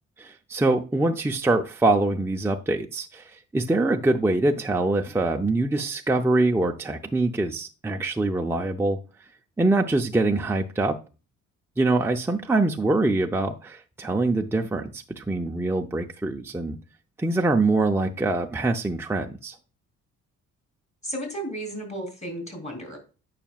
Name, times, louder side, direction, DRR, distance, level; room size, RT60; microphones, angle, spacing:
voice 1, 0.2-9.0 9.6-11.0 11.8-16.8 17.2-19.5, right 2 dB, 10° right, 2 dB, 0.6 m, -24 dB
voice 2, 21.0-23.0, right 1 dB, 25° left, 2 dB, 3.7 m, -33 dB
8.9 x 5.8 x 2.4 m, 0.32 s
cardioid pair, 90°, 30 cm